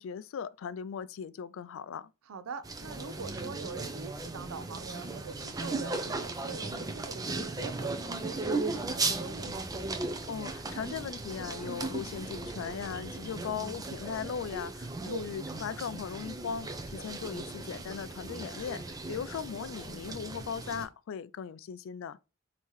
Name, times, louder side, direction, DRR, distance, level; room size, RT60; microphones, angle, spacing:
voice 1, 0.0-2.1 10.3-22.2, left 7 dB, 65° left, 0.3 m, -38 dB
voice 2, 2.3-9.7 15.0-15.3 16.9-17.1, right 5 dB, 85° right, 0.5 m, -43 dB
sound 1, 2.6-20.9, right 3 dB, 20° right, 0.6 m, -37 dB
5.5 x 2.9 x 3.1 m
head